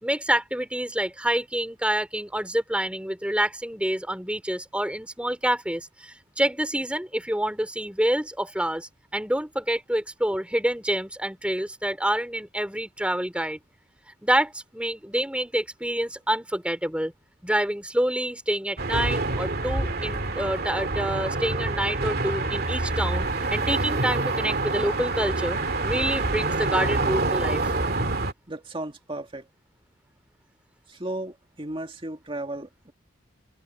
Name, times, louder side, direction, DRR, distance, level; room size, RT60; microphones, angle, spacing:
voice 1, 0.0-13.6 14.2-17.1 17.4-25.6 25.8-27.7, right 1 dB, 5° right, 3.4 m, -27 dB
sound 1, 18.8-28.3, right 2 dB, 55° right, 2.3 m, -26 dB
voice 2, 28.5-29.5 30.9-32.9, right 1 dB, 30° right, 2.1 m, -35 dB
open air
head